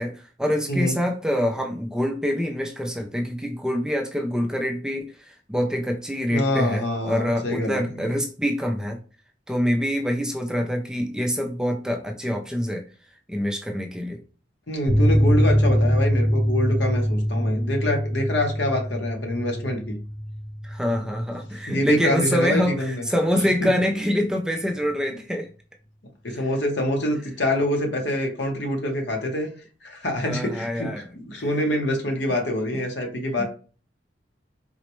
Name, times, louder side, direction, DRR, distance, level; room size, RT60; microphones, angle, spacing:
voice 1, 0.0-9.0 9.5-12.8 13.3-14.2 20.6-25.5 26.3-26.4 30.2-31.1 31.3-31.4, equal, 5° right, 3 dB, 0.3 m, -25 dB
voice 2, 0.7-1.0 6.3-8.0 14.7-20.0 21.7-23.0 23.6-23.7 26.2-29.5 29.8-33.4, left 1 dB, 75° left, 2 dB, 0.9 m, -26 dB
sound 1, 14.9-22.0 22.2-22.3 22.7-22.8, equal, 15° left, 0.7 m, -23 dB
3.9 x 2.1 x 3.0 m, 0.39 s
head